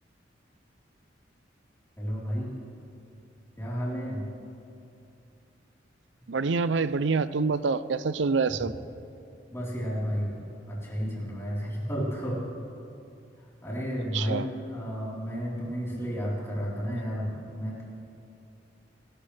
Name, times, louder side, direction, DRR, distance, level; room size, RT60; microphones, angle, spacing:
voice 1, 2.0-2.5 3.6-4.3 9.5-10.4 10.7-12.4 13.6-17.8, equal, 15° left, -7 dB, 4.0 m, -32 dB
voice 2, 6.3-8.7 14.1-14.5, right 4 dB, 75° right, 15 dB, 0.5 m, -26 dB
28.0 x 12.5 x 3.4 m, 2.7 s
head